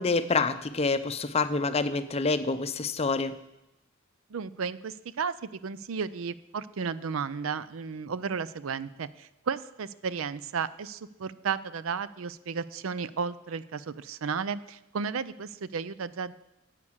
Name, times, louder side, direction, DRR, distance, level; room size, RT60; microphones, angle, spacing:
voice 1, 0.0-3.3, left 4 dB, 30° left, 12 dB, 0.6 m, -27 dB
voice 2, 4.3-16.4, right 5 dB, 80° right, 17 dB, 0.5 m, -33 dB
9.6 x 8.4 x 7.2 m, 0.91 s
head